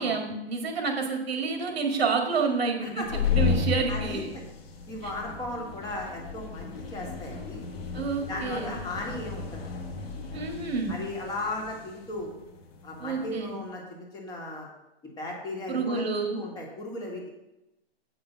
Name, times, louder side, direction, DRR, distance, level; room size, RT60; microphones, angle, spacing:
voice 1, 0.0-4.3 7.9-8.8 10.3-11.0 13.0-13.5 15.7-16.4, right 4 dB, 85° right, 2 dB, 1.9 m, -29 dB
sound 1, 2.9-13.4, left 5 dB, 75° left, 1.7 m, -33 dB
voice 2, 3.9-4.2 4.9-7.6 8.3-9.5 10.3-10.4 10.9-12.3 12.8-14.7 15.2-17.3, left 2 dB, 15° left, -1 dB, 1.8 m, -36 dB
8.8 x 5.4 x 5.7 m, 0.93 s
hypercardioid pair, 150°, 30 cm